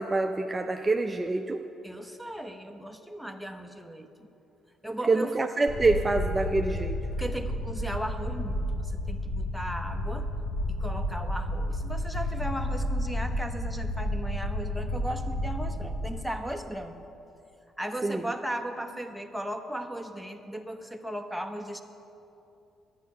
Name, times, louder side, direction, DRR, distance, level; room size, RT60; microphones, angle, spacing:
voice 1, 0.0-1.6 5.1-7.0 18.0-18.2, right 3 dB, 25° right, 5 dB, 0.5 m, -26 dB
voice 2, 1.8-4.1 4.8-5.3 7.2-10.3 10.8-17.0 17.8-21.8, right 1 dB, ahead, 5 dB, 0.8 m, -36 dB
sound 1, 5.7-16.2, left 1 dB, 50° left, 1.3 m, -31 dB
10.5 x 9.4 x 5.5 m, 2.7 s
cardioid pair, 80°, 0 cm